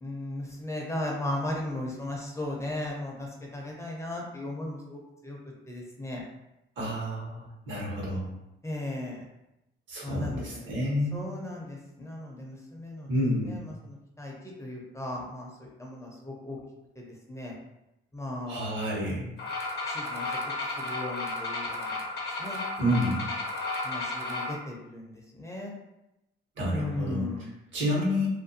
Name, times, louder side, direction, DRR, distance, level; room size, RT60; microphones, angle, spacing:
voice 1, 0.0-5.4 5.7-6.2 8.6-9.3 10.0-10.6 11.1-13.1 13.4-16.6 17.0-17.5 18.1-18.7 19.9-22.0 22.4-22.9 23.8-25.7 26.7-27.5, left 1 dB, 15° left, -2 dB, 0.5 m, -37 dB
voice 2, 6.8-8.2 9.9-11.2 13.1-13.7 18.5-19.3 22.8-23.2 26.6-28.3, equal, 70° right, -4 dB, 1.0 m, -29 dB
sound 1, 19.4-24.5, left 2 dB, 55° left, 0.7 m, -33 dB
2.5 x 2.2 x 2.6 m, 0.91 s
cardioid pair, 90°, 20 cm